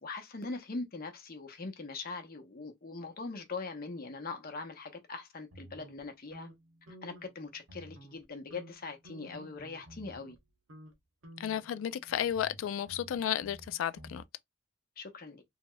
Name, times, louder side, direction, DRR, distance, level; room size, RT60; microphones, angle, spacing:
voice 1, 0.0-6.5 7.0-10.4 15.0-15.4, left 3 dB, 45° left, 0.7 m, -41 dB
sound 1, 5.5-7.4 7.6-8.2 8.5-10.4 10.7-10.9 11.2-14.2, equal, 80° right, 1.0 m, -53 dB
voice 2, 11.4-14.2, left 10 dB, 80° left, 0.3 m, -33 dB
3.0 x 2.9 x 2.2 m
head